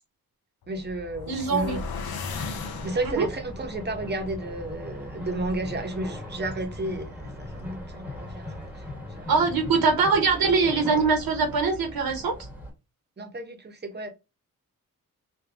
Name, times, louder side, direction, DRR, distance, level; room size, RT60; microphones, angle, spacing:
sound 1, 0.6-3.5, left 5 dB, 80° left, 0.8 m, -36 dB
voice 1, 0.7-1.8 2.8-9.3 13.2-14.1, right 2 dB, 30° right, 0.9 m, -33 dB
voice 2, 1.3-1.8 3.0-3.3 9.3-12.3, right 4 dB, 80° right, 1.1 m, -23 dB
sound 2, 2.3-12.7, left 1 dB, 5° right, 1.3 m, -39 dB
3.4 x 2.9 x 3.4 m
wide cardioid pair, 110°, 36 cm